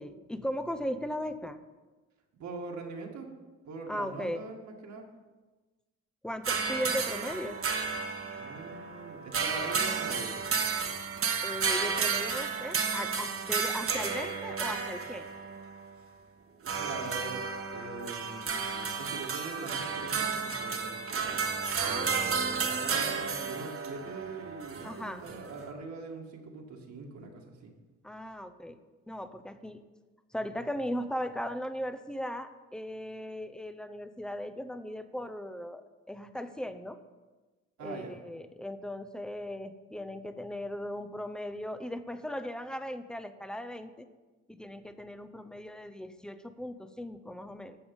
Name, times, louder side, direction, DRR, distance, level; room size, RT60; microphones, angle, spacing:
voice 1, 0.0-1.6 3.9-4.4 6.2-7.6 11.4-15.3 21.8-22.3 24.8-25.2 28.0-28.8 29.1-29.8 30.3-37.0 37.8-44.1 44.5-47.8, equal, ahead, 10 dB, 0.8 m, -38 dB
voice 2, 2.4-3.3 3.7-5.1 8.4-10.4 16.4-17.5 17.7-21.4 21.8-27.7 37.8-38.2, right 3 dB, 70° right, 1 dB, 2.0 m, -43 dB
sound 1, 6.4-15.9 16.7-25.7, right 5 dB, 45° right, 1.3 m, -32 dB
13.5 x 7.0 x 5.4 m, 1.3 s
cardioid pair, 90°, 30 cm